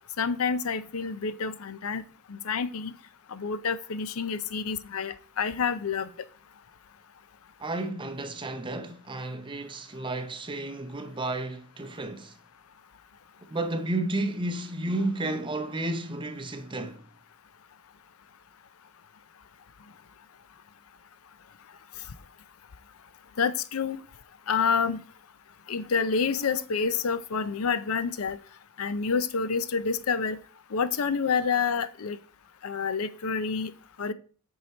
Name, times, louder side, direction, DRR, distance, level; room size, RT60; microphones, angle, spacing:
voice 1, 0.2-2.0 2.3-2.9 3.3-6.1 23.4-24.0 24.5-25.0 25.7-28.4 28.8-30.4 30.7-32.2 32.6-33.7 34.0-34.1, left 5 dB, 75° left, 0.6 m, -28 dB
voice 2, 7.6-12.4 13.5-17.1, right 2 dB, 20° right, 0.7 m, -32 dB
8.4 x 4.7 x 4.4 m
head